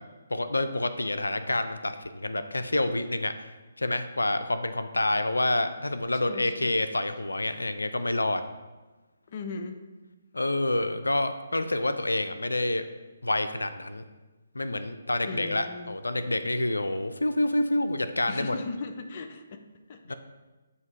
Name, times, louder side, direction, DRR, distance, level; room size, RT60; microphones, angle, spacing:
voice 1, 0.3-3.5 3.8-8.4 10.3-12.8 13.2-14.0 14.5-18.6 20.1-20.2, left 2 dB, 90° left, 10 dB, 0.4 m, -28 dB
voice 2, 6.3-6.8 9.3-9.8 15.2-16.0 18.3-19.6 19.9-20.1, left 4 dB, 45° left, 6 dB, 0.6 m, -38 dB
8.1 x 2.8 x 4.6 m, 1.2 s
figure-of-eight pair, 145°, 0 cm